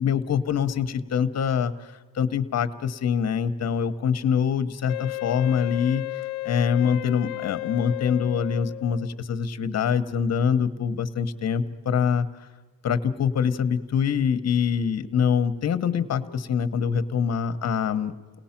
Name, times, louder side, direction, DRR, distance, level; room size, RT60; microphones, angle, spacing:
voice 1, 0.0-1.9 2.1-6.0 6.4-12.3 12.8-18.1, left 7 dB, 40° left, 10 dB, 1.0 m, -24 dB
Wind instrument woodwind instrument, 4.9-9.1, left 21 dB, 80° left, 0.6 m, -33 dB
30.0 x 19.0 x 5.9 m, 1.3 s
cardioid pair, 155°, 38 cm